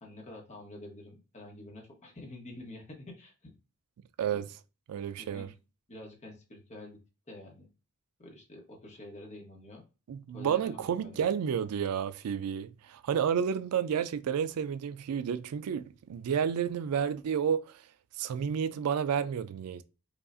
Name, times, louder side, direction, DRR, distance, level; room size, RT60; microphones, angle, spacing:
voice 1, 0.0-3.5 4.3-4.4 5.2-5.5 5.9-7.0 7.3-7.7 8.2-9.8 10.3-11.2, left 1 dB, 30° left, 1.1 m, -48 dB
voice 2, 4.9-5.5 10.1-17.8 18.2-19.8, right 8 dB, 85° right, 0.3 m, -31 dB
5.2 x 2.4 x 2.5 m
head